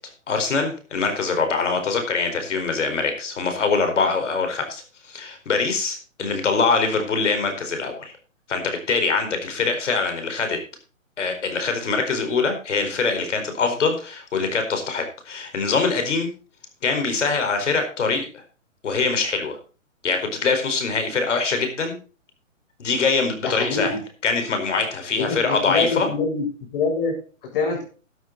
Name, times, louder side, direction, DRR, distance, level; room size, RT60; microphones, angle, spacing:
voice 1, 0.3-8.1 8.5-10.6 11.2-16.3 16.8-18.4 18.8-19.6 20.0-22.0 22.8-24.0 24.2-26.1, left 4 dB, 65° left, 6 dB, 4.6 m, -23 dB
voice 2, 23.4-24.0 25.1-26.5 26.7-27.8, left 4 dB, 45° left, 1 dB, 7.5 m, -25 dB
12.5 x 10.0 x 4.0 m, 0.36 s
hypercardioid pair, 140°, 39 cm